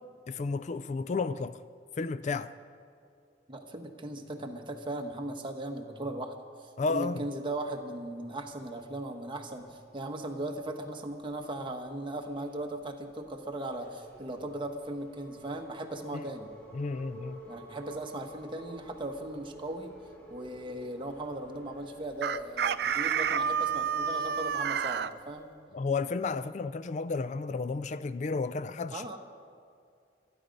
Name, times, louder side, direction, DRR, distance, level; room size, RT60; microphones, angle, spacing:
voice 1, 0.3-1.6 2.0-2.5 6.8-7.2 16.1-16.2 16.7-17.4 25.7-29.2, left 4 dB, 40° left, 0.3 m, -32 dB
voice 2, 3.5-16.5 17.4-20.0 20.3-25.5 28.9-29.2, right 1 dB, 30° right, 1.2 m, -38 dB
sound 1, 7.8-24.9, right 1 dB, 10° left, 3.1 m, -53 dB
Chicken rooster, 22.2-25.1, right 7 dB, 60° right, 0.4 m, -29 dB
25.5 x 10.0 x 5.3 m
head